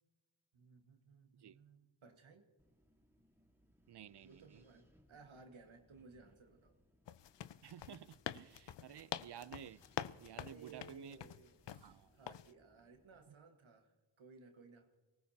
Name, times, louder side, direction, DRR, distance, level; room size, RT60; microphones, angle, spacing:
voice 1, 0.5-2.5 4.2-6.8 8.7-8.8 10.3-15.0, right 4 dB, 85° right, 1.6 m, -60 dB
Wind, 2.6-13.3, equal, 5° right, 1.7 m, -72 dB
voice 2, 3.9-4.6 7.6-9.8 10.2-11.2 11.8-12.1, right 9 dB, 60° right, 0.6 m, -53 dB
sound 1, 7.1-11.9 12.3-12.5, left 10 dB, 65° left, 0.5 m, -46 dB
24.5 x 19.0 x 2.8 m
wide cardioid pair, 70°, 46 cm